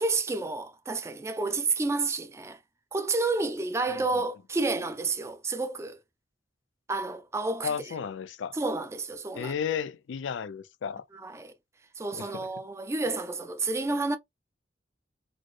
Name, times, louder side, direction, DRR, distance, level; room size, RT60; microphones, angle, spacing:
voice 1, 0.0-2.6 2.9-6.0 6.9-7.9 8.5-9.5 11.1-11.5 12.0-14.2, right 3 dB, 15° right, 0.4 m, -30 dB
voice 2, 7.6-8.6 9.3-11.0 12.1-12.3, left 7 dB, 90° left, 0.4 m, -33 dB
4.2 x 2.0 x 3.1 m
head